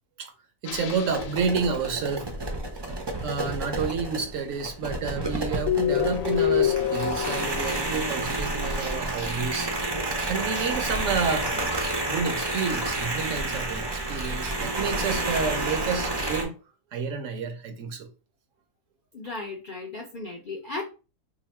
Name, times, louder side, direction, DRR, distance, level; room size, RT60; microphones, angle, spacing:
sound 1, 0.6-2.0 5.7-8.4, left 11 dB, 70° left, 0.9 m, -27 dB
voice 1, 0.6-2.3 3.2-9.7 10.1-11.6 12.1-16.6 16.9-18.1, right 5 dB, 65° right, 0.9 m, -30 dB
sound 2, 0.8-16.4, right 2 dB, 35° right, 0.4 m, -30 dB
voice 2, 19.1-20.8, left 3 dB, 55° left, 0.6 m, -35 dB
2.8 x 2.5 x 4.2 m
omnidirectional pair, 1.6 m